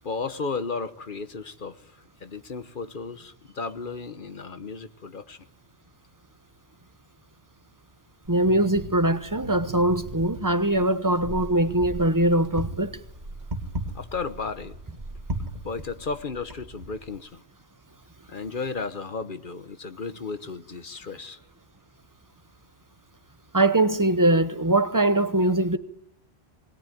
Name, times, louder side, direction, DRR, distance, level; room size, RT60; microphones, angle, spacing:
voice 1, 0.0-1.9 2.2-5.4 13.9-14.7 15.6-17.4 18.3-21.4, left 4 dB, 50° left, 1.2 m, -34 dB
Wind, 8.2-17.2, right 1 dB, 40° right, 2.2 m, -37 dB
voice 2, 8.3-13.0 23.5-25.8, right 1 dB, 20° right, 0.9 m, -22 dB
21.0 x 20.0 x 9.2 m
omnidirectional pair, 1.1 m